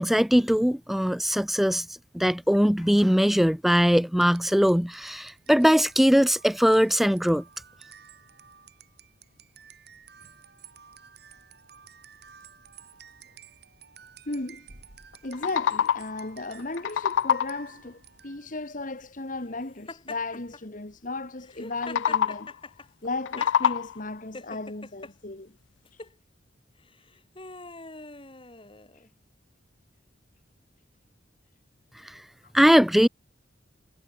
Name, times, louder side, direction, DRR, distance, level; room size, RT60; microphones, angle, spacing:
voice 1, 0.0-1.9 2.1-7.4 32.0-32.2 32.5-33.1, equal, ahead, 0.4 m, -21 dB
sound 1, 4.2-18.6, right 7 dB, 60° right, 4.6 m, -52 dB
voice 2, 14.3-14.7 15.2-22.5 23.0-25.5 25.9-26.0 32.4-32.5, left 2 dB, 45° left, 1.8 m, -35 dB
sound 2, 15.1-16.2 16.6-17.7 21.7-22.6 23.0-24.1, left 8 dB, 80° left, 0.3 m, -26 dB
Laughter, 19.9-20.6 21.4-23.8 24.3-25.1 25.9-26.1 26.9-29.1, left 3 dB, 30° left, 3.8 m, -43 dB
head